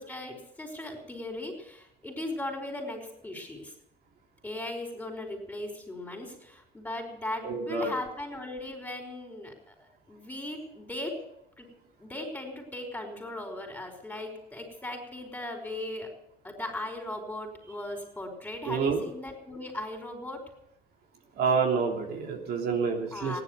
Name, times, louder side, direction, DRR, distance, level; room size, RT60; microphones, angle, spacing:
voice 1, 0.0-3.7 4.4-11.3 11.6-11.7 12.0-16.1 16.4-20.4 23.1-23.4, left 1 dB, 10° left, 4 dB, 5.2 m, -38 dB
voice 2, 7.4-7.9 18.7-19.0 21.4-23.4, right 5 dB, 65° right, 1 dB, 3.2 m, -28 dB
16.5 x 11.0 x 8.1 m, 0.78 s
cardioid pair, 110°, 17 cm